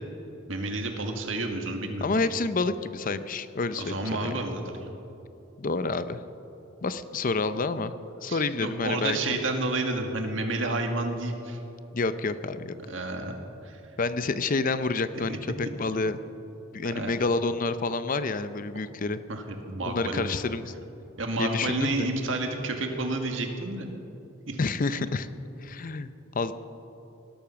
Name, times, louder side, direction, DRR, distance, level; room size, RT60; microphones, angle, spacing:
voice 1, 0.5-2.2 3.8-4.6 8.3-11.6 12.9-13.4 13.6-13.8 15.1-15.4 16.9-17.1 19.3-20.3 21.2-23.9 24.5-24.6, right 2 dB, 70° right, 4 dB, 1.9 m, -30 dB
voice 2, 2.0-4.3 5.6-6.2 6.8-7.9 8.2-9.2 11.9-12.8 14.0-16.2 16.7-19.2 19.9-20.7 21.4-22.1 24.6-25.3 25.6-26.5, left 3 dB, 45° left, 12 dB, 0.6 m, -28 dB
19.5 x 12.5 x 5.9 m, 2.9 s
head